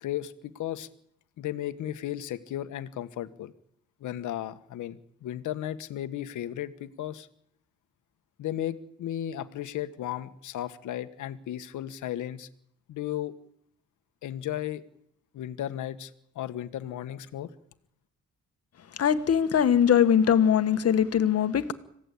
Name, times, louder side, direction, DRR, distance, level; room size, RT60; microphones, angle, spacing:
voice 1, 0.0-0.9 1.4-3.5 4.0-7.3 8.4-12.5 12.9-13.3 14.2-14.8 15.3-16.1 16.3-17.5, left 12 dB, 80° left, 11 dB, 1.6 m, -35 dB
voice 2, 19.0-21.7, left 8 dB, 55° left, 11 dB, 1.8 m, -21 dB
26.0 x 16.5 x 8.7 m, 0.73 s
cardioid pair, 90°, 30 cm